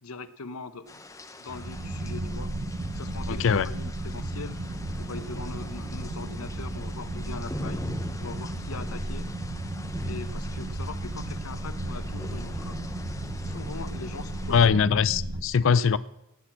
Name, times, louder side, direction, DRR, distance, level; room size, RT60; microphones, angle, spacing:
voice 1, 0.0-1.0 1.4-2.5 2.9-4.6 5.0-7.8 8.2-9.3 10.0-12.8 13.4-14.8 15.7-15.8, left 3 dB, 90° left, 0.9 m, -41 dB
sound 1, 0.9-14.7, left 1 dB, 15° left, 0.7 m, -42 dB
sound 2, 1.5-15.4, right 1 dB, 65° right, 1.3 m, -34 dB
voice 2, 3.3-3.7 14.5-16.0, left 6 dB, 60° left, 0.4 m, -21 dB
17.5 x 6.3 x 7.3 m
head